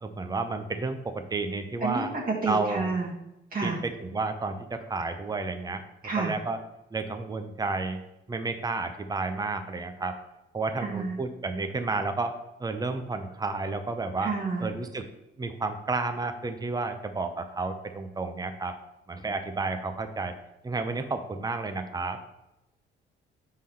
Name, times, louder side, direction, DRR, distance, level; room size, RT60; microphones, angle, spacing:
voice 1, 0.0-2.1 2.4-2.9 3.6-5.8 6.2-6.6 6.9-8.0 8.3-10.2 10.5-14.3 14.6-15.1 15.4-18.8 19.1-20.3 20.6-22.2, right 3 dB, 20° right, 7 dB, 0.7 m, -31 dB
voice 2, 1.8-3.1 3.5-3.8 6.0-6.3 10.8-11.2 14.2-14.7, right 4 dB, 45° right, -4 dB, 1.4 m, -29 dB
4.8 x 3.8 x 5.7 m, 0.90 s
cardioid pair, 90°, 20 cm